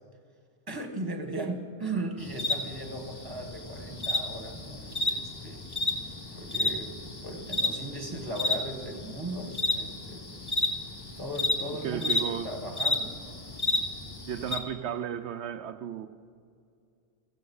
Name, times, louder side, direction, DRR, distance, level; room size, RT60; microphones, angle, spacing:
voice 1, 0.7-5.6 6.3-10.2 11.2-13.2, right 1 dB, 20° right, 1.6 m, -37 dB
sound 1, 2.2-14.6, left 2 dB, 20° left, 1.3 m, -32 dB
voice 2, 11.8-12.6 14.3-16.1, right 9 dB, 80° right, 0.9 m, -34 dB
15.5 x 15.5 x 5.5 m
omnidirectional pair, 1.1 m